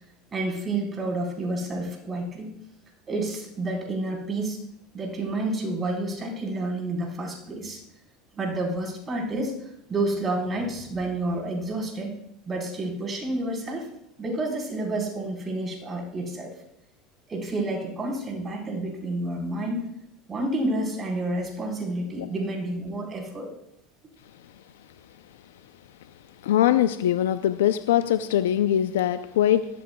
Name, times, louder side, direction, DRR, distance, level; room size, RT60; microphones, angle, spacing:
voice 1, 0.3-2.5 3.1-4.6 4.9-7.8 8.3-12.1 12.5-13.9 14.2-16.5 17.3-19.9 20.3-23.5, right 2 dB, 30° right, 0 dB, 4.2 m, -29 dB
voice 2, 26.4-29.7, left 11 dB, 85° left, 11 dB, 0.5 m, -22 dB
20.0 x 14.0 x 2.3 m, 0.79 s
hypercardioid pair, 90°, 0 cm